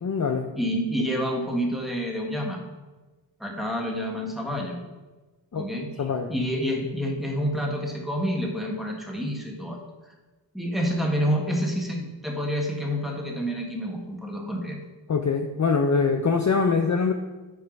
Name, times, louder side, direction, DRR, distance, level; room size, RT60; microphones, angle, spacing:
voice 1, 0.0-0.5 5.5-5.7 6.0-6.3 15.1-17.1, left 5 dB, 40° left, 5 dB, 0.5 m, -23 dB
voice 2, 0.5-2.6 3.4-4.8 5.5-9.8 10.5-14.8, equal, ahead, -1 dB, 1.5 m, -28 dB
8.8 x 3.3 x 5.2 m, 1.2 s
wide cardioid pair, 50°, 44 cm